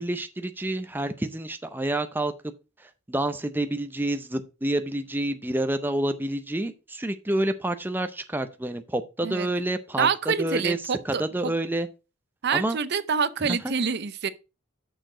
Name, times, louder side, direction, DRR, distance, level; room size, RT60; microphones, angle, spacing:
voice 1, 0.0-2.3 2.8-10.8 11.1-11.9 12.5-12.8 13.5-13.7, right 1 dB, 10° right, 0.5 m, -28 dB
voice 2, 10.0-11.5 12.4-14.3, right 6 dB, 55° right, 0.6 m, -26 dB
6.6 x 6.4 x 4.8 m
head